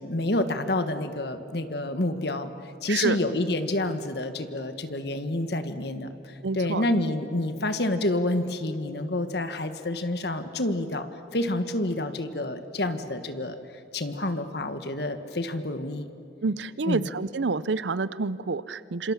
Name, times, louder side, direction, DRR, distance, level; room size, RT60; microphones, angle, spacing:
voice 1, 0.0-2.5 2.8-11.1 11.3-13.6 13.9-16.1 16.9-17.0, left 1 dB, 60° left, 9 dB, 1.5 m, -28 dB
voice 2, 2.9-3.2 6.4-6.8 16.4-19.1, right 4 dB, 75° right, 17 dB, 0.7 m, -28 dB
27.0 x 26.0 x 7.3 m, 2.7 s
head